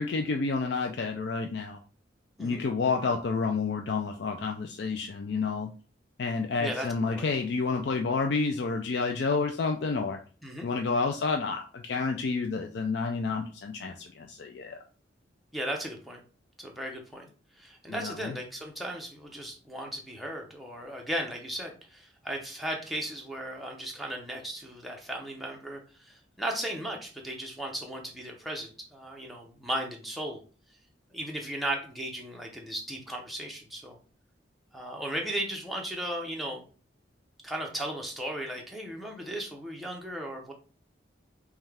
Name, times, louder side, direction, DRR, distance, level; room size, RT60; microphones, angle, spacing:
voice 1, 0.0-1.8 2.4-5.7 6.2-10.2 10.6-14.8 17.9-18.4, left 4 dB, 60° left, 4 dB, 0.4 m, -29 dB
voice 2, 15.5-16.2 16.6-17.3 17.6-30.4 31.1-34.0 34.7-36.6 37.4-40.5, right 1 dB, ahead, 0 dB, 0.8 m, -36 dB
5.4 x 2.3 x 3.4 m, 0.37 s
head